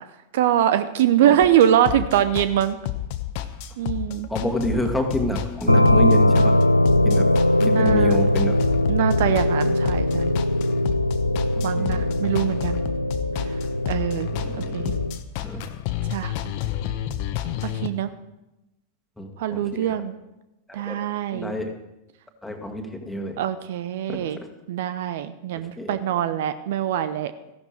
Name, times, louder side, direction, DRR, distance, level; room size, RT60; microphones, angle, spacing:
voice 1, 0.3-2.8 3.8-4.3 7.6-8.2 8.9-10.3 11.6-12.9 13.9-14.3 14.6-15.0 16.1-16.3 17.6-18.1 19.4-20.1 20.7-21.5 23.4-24.4 24.7-27.3, right 10 dB, 55° right, 12 dB, 0.7 m, -23 dB
sound 1, 1.4-17.9, left 12 dB, 45° left, 1.1 m, -31 dB
voice 2, 4.3-6.6 7.0-7.3 7.6-8.6 11.6-12.0 14.3-15.0 15.4-15.6 19.2-20.0 20.7-21.0 21.3-21.7 22.4-23.4 24.1-24.5 25.8-26.0, equal, 5° left, 2 dB, 2.0 m, -28 dB
sound 2, 5.7-15.2, left 1 dB, 85° left, 0.4 m, -21 dB
15.5 x 11.5 x 4.6 m, 0.95 s
figure-of-eight pair, 90°, 0 cm